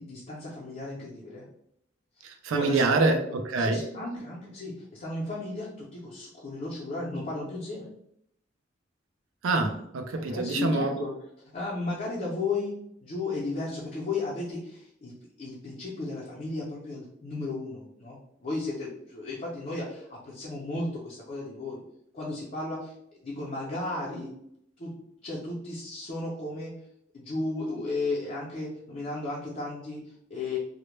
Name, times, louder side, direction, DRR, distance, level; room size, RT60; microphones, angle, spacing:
voice 1, 0.0-1.5 2.2-3.2 3.6-7.9 10.1-11.1 11.5-12.7 13.0-21.8 22.1-22.9 23.2-24.3 24.8-24.9 25.2-26.7 27.1-30.6, left 2 dB, 40° left, -5 dB, 0.5 m, -34 dB
voice 2, 2.2-3.8 9.4-11.0, right 3 dB, 85° right, 6 dB, 0.4 m, -26 dB
2.1 x 2.0 x 3.0 m, 0.74 s
head